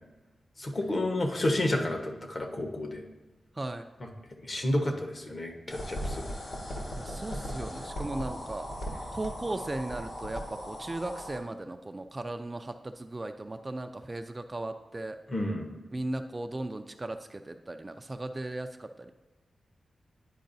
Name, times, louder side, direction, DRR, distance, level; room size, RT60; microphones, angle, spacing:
voice 1, 0.6-3.0 4.4-6.5 15.3-15.7, left 1 dB, 40° left, 3 dB, 1.0 m, -30 dB
sound 1, 5.7-11.4, equal, 60° left, 1.5 m, -38 dB
voice 2, 6.9-8.7 9.1-15.2 15.9-19.1, right 2 dB, 25° right, 7 dB, 0.3 m, -37 dB
10.0 x 4.7 x 2.6 m, 1.1 s
wide cardioid pair, 95°, 0 cm